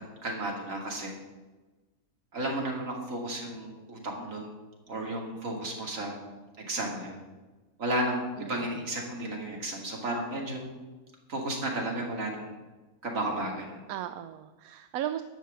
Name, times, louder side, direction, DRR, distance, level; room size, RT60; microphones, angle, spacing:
voice 1, 0.2-1.1 2.3-4.5 4.9-6.1 6.7-7.2 7.8-10.7 11.3-12.5 13.0-13.8, right 1 dB, 65° right, 0 dB, 2.8 m, -33 dB
voice 2, 8.4-8.8 13.9-15.2, right 11 dB, 85° right, 10 dB, 1.1 m, -36 dB
12.0 x 5.9 x 8.3 m, 1.2 s
omnidirectional pair, 1.5 m